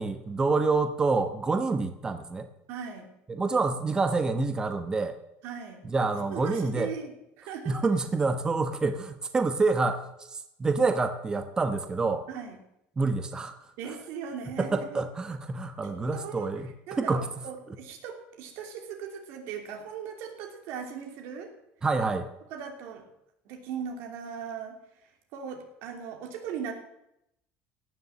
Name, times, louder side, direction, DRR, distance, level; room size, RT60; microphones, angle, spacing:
voice 1, 0.0-2.5 3.3-5.2 5.9-6.9 7.7-10.0 10.6-12.2 13.0-13.5 14.6-16.7 17.0-17.3 21.8-22.3, right 3 dB, 15° right, 8 dB, 1.1 m, -27 dB
voice 2, 2.7-3.1 5.4-5.8 6.1-7.8 12.3-12.6 13.8-15.0 15.8-16.5 16.9-21.5 22.5-23.1 23.4-26.7, right 7 dB, 65° right, 3 dB, 3.1 m, -39 dB
17.0 x 6.9 x 7.5 m, 0.82 s
cardioid pair, 140°, 4 cm